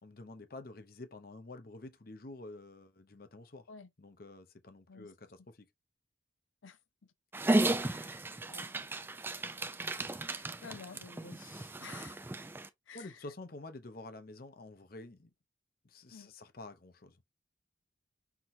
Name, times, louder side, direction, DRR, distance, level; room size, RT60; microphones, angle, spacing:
voice 1, 0.0-3.7 4.0-5.7 12.9-15.3 15.8-17.2, left 2 dB, 45° left, 0.7 m, -49 dB
voice 2, 6.6-7.1 7.7-8.7 9.9-12.3 12.9-13.3 16.1-16.3, left 5 dB, 80° left, 0.6 m, -52 dB
Dog, 7.3-12.7, right 1 dB, 10° right, 0.3 m, -34 dB
5.9 x 2.9 x 2.6 m
head